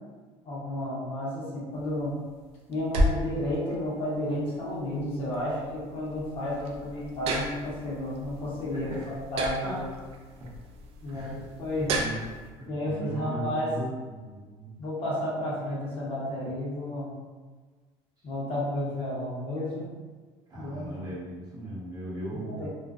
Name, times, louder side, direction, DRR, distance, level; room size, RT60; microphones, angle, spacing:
voice 1, 0.4-2.2 2.7-9.8 11.0-12.0 12.7-13.7 14.8-17.1 18.2-20.0 20.6-20.9 22.5-22.7, left 1 dB, 45° left, -7 dB, 1.0 m, -32 dB
sound 1, 1.7-12.5, equal, 50° right, 0.4 m, -34 dB
voice 2, 8.7-9.1 9.6-10.0 10.4-10.5 11.1-11.4 11.7-14.7 20.5-22.7, equal, 30° right, -7 dB, 0.8 m, -38 dB
2.5 x 2.1 x 2.4 m, 1.4 s
cardioid pair, 130°, 13 cm